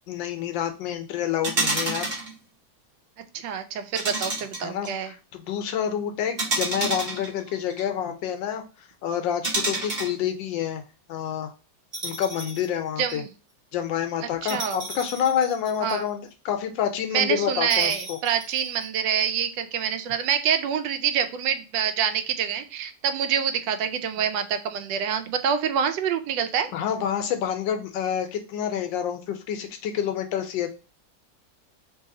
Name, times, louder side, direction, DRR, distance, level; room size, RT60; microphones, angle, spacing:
voice 1, 0.1-2.2 4.6-8.6 9.0-10.8 11.1-11.5 12.0-13.2 13.7-18.2 26.7-30.7, left 9 dB, 85° left, 7 dB, 1.4 m, -28 dB
sound 1, 1.4-2.3 3.9-4.9 6.4-7.8 9.4-10.2 11.9-12.7 13.1-13.2 14.5-16.1 17.7-18.8, right 2 dB, 35° right, 1.1 m, -29 dB
voice 2, 3.3-5.1 13.0-13.3 14.4-14.8 15.8-16.1 17.1-26.7, right 8 dB, 80° right, 8 dB, 1.3 m, -26 dB
3.3 x 2.9 x 3.7 m, 0.32 s
omnidirectional pair, 2.0 m